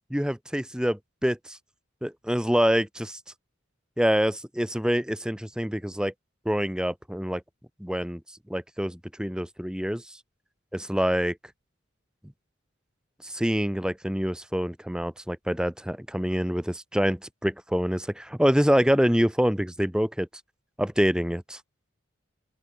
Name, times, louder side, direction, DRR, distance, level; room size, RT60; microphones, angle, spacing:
voice 1, 0.1-1.6 2.0-3.2 4.0-6.1 6.4-7.4 7.8-8.2 8.5-10.0 10.9-11.4 13.2-20.3 20.8-21.6, equal, 5° right, 1.1 m, -26 dB
open air
head